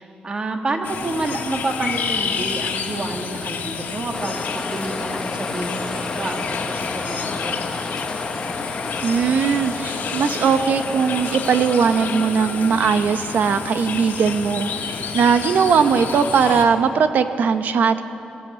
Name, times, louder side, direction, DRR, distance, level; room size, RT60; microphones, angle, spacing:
voice 1, 0.0-7.7, right 2 dB, 30° right, 4 dB, 1.8 m, -29 dB
sound 1, 0.8-16.6, left 6 dB, 80° left, 2.0 m, -29 dB
sound 2, 4.1-12.3, left 3 dB, 20° left, 0.9 m, -31 dB
voice 2, 9.0-14.7 15.1-18.0, right 6 dB, 65° right, 9 dB, 1.0 m, -19 dB
22.0 x 15.0 x 8.4 m, 2.9 s
wide cardioid pair, 150°, 3 cm